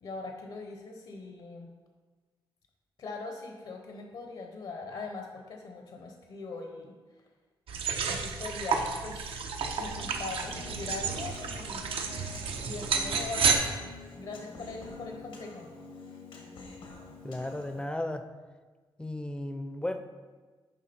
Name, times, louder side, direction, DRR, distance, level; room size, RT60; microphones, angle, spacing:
voice 1, 0.0-1.7 3.0-6.9 8.1-9.4 9.8-11.8 12.6-13.8 14.1-15.7, left 3 dB, 65° left, 2 dB, 0.9 m, -41 dB
sound 1, 7.7-13.6, right 5 dB, 85° right, 0.7 m, -31 dB
Human voice, 9.8-17.8, left 3 dB, 85° left, 1.5 m, -46 dB
voice 2, 17.2-18.2 19.0-20.0, left 1 dB, 10° left, 7 dB, 0.5 m, -34 dB
10.5 x 3.6 x 4.3 m, 1.4 s
wide cardioid pair, 135°, 9 cm